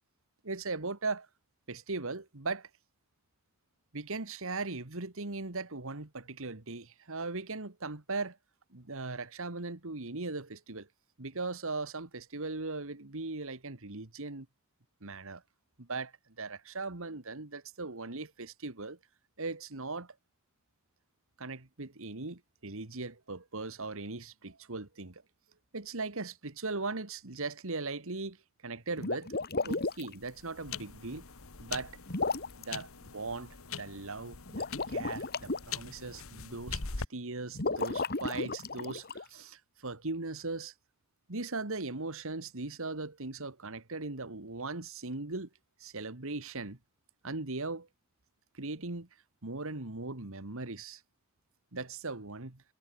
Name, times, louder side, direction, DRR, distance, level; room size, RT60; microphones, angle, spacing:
voice 1, 0.4-1.3 1.7-2.7 3.9-8.4 8.7-10.9 11.2-14.5 15.0-15.4 15.8-16.1 16.4-19.0 19.4-20.2 21.4-25.2 25.7-28.4 28.6-29.3 29.6-31.2 31.6-32.0 32.6-36.8 37.1-40.7 41.3-45.5 45.8-46.8 47.2-47.9 48.5-49.1 49.4-51.0 51.7-52.6, right 3 dB, 65° right, 2.0 m, -39 dB
sound 1, 28.9-30.1 32.1-32.6 34.5-35.6 37.5-39.2, left 3 dB, 45° left, 2.6 m, -33 dB
sound 2, 29.7-37.0, left 5 dB, 70° left, 1.7 m, -43 dB
head